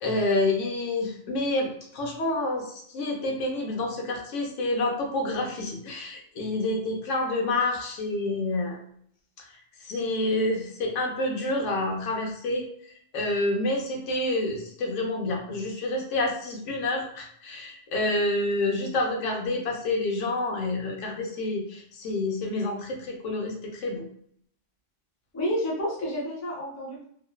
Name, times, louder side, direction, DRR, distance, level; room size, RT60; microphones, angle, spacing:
voice 1, 0.0-8.8 9.4-9.5 9.8-12.6 13.1-24.1, left 2 dB, 80° left, 1 dB, 1.0 m, -28 dB
voice 2, 25.3-27.0, equal, 20° left, -3 dB, 0.5 m, -30 dB
2.9 x 2.0 x 2.2 m, 0.63 s
omnidirectional pair, 1.3 m